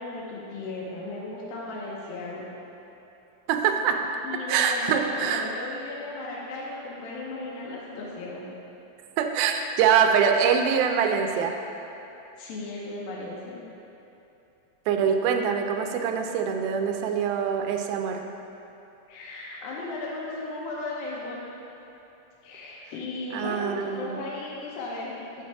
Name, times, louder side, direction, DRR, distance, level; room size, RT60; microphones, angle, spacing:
voice 1, 0.0-2.5 4.2-8.5 12.4-13.6 19.1-21.4 22.4-25.4, left 2 dB, 80° left, -5 dB, 2.7 m, -36 dB
voice 2, 3.5-4.1 4.5-5.5 9.2-11.6 14.9-18.2 23.3-24.2, right 7 dB, 90° right, 4 dB, 2.5 m, -24 dB
7.9 x 7.7 x 3.4 m, 3.0 s
omnidirectional pair, 4.2 m